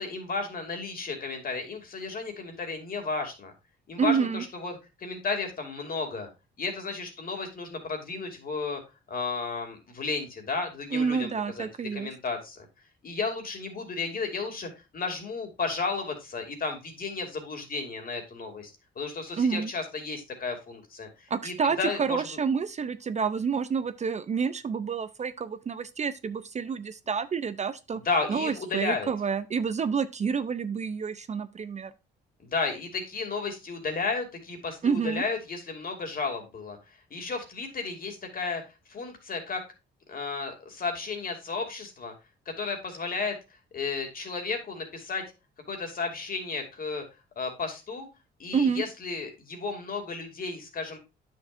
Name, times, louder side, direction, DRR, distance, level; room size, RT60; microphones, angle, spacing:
voice 1, 0.0-3.5 3.9-6.3 6.6-8.8 9.1-11.3 11.6-12.6 13.0-22.4 27.9-29.1 32.4-38.6 38.9-39.6 40.1-42.1 42.5-43.4 43.7-45.2 45.7-47.0 47.4-48.1 48.4-51.0, left 4 dB, 45° left, 2.5 m, -33 dB
voice 2, 4.0-4.4 10.9-12.1 19.4-19.7 21.3-28.0 28.3-31.9 34.8-35.2 48.5-48.8, right 6 dB, 35° right, 0.5 m, -28 dB
9.7 x 6.5 x 2.5 m
cardioid pair, 90°, 20 cm